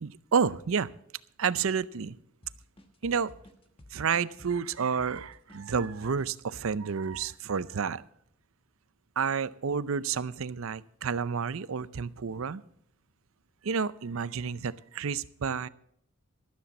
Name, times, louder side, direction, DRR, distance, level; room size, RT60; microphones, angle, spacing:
voice 1, 0.0-0.9 1.4-2.2 3.0-3.3 3.9-8.0 9.2-12.6 13.6-15.7, right 6 dB, 70° right, 17 dB, 0.5 m, -30 dB
sound 1, 2.4-7.7, left 1 dB, 25° left, 1.2 m, -53 dB
13.0 x 13.0 x 4.1 m, 0.68 s
head